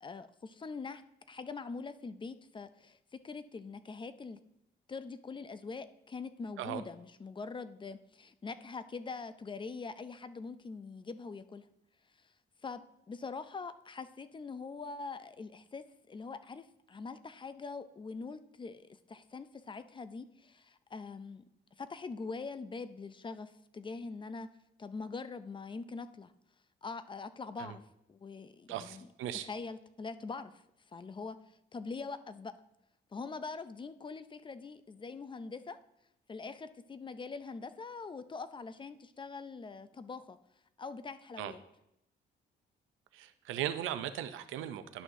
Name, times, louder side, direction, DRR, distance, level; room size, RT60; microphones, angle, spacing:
voice 1, 0.0-4.4 4.9-11.7 12.6-21.4 21.8-24.5 24.8-26.3 26.8-27.8 28.1-29.1 29.3-30.6 30.9-32.5 33.1-35.8 36.3-40.4 40.8-41.6, left 4 dB, 25° left, 12 dB, 0.4 m, -43 dB
voice 2, 28.7-29.5 41.4-41.5 43.1-45.0, right 11 dB, 85° right, 11 dB, 0.5 m, -38 dB
11.0 x 6.1 x 2.7 m, 0.82 s
cardioid pair, 90°, 20 cm